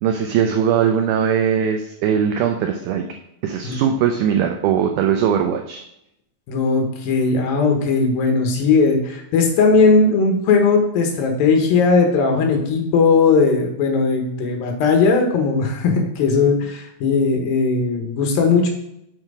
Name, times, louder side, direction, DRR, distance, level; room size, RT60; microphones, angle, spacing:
voice 1, 0.0-3.0 3.4-5.8, right 8 dB, 85° right, 4 dB, 1.8 m, -20 dB
voice 2, 6.5-18.7, left 4 dB, 75° left, 3 dB, 2.8 m, -18 dB
7.4 x 4.5 x 4.9 m, 0.79 s
omnidirectional pair, 4.3 m